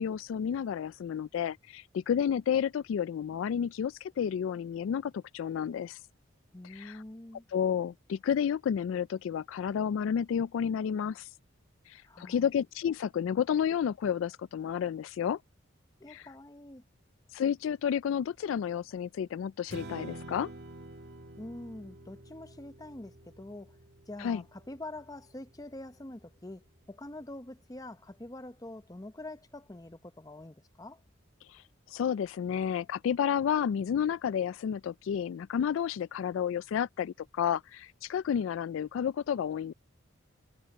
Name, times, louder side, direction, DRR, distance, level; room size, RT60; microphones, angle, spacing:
voice 1, 0.0-6.0 6.7-7.0 7.5-11.3 11.9-15.4 16.1-16.2 17.3-20.5 24.2-24.4 31.5-39.7, left 8 dB, 80° left, 0.3 m, -31 dB
voice 2, 6.5-7.5 12.0-12.5 16.0-16.8 21.4-23.8 24.1-31.0, left 1 dB, 20° left, 0.7 m, -45 dB
Strum, 19.7-26.0, right 1 dB, 55° right, 1.9 m, -48 dB
head